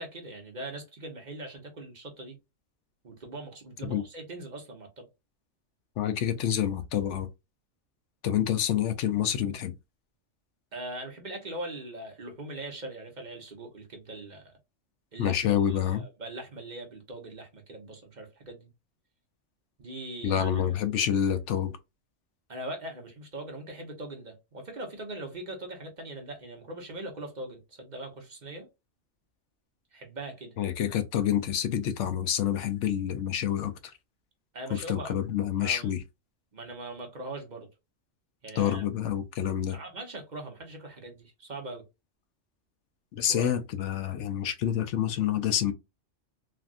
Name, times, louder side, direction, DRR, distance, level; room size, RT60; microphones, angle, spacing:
voice 1, 0.0-2.4 3.0-5.1 10.7-14.5 15.1-18.7 19.8-20.6 22.5-28.7 29.9-30.6 34.5-35.2 35.6-35.9 36.5-37.7 38.4-38.8 39.7-41.8 43.3-43.5, right 1 dB, 40° right, 1.0 m, -41 dB
voice 2, 6.0-7.3 8.2-9.7 15.2-16.0 20.2-21.7 30.6-33.7 34.7-36.0 38.6-39.8 43.1-45.7, left 10 dB, 75° left, 0.9 m, -27 dB
3.4 x 2.5 x 2.4 m
omnidirectional pair, 1.3 m